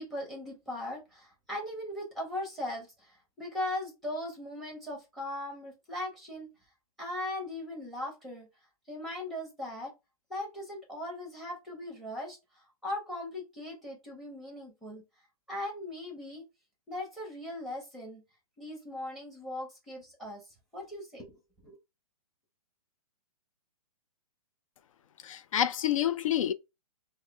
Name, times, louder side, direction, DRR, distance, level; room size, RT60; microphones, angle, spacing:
voice 1, 0.0-6.5 7.0-8.5 8.9-9.9 10.3-15.0 15.5-16.4 16.9-18.2 18.6-21.8, left 1 dB, ahead, 1.3 m, -39 dB
voice 2, 25.2-26.5, left 11 dB, 60° left, 0.5 m, -28 dB
4.6 x 2.2 x 3.2 m
hypercardioid pair, 155°, 19 cm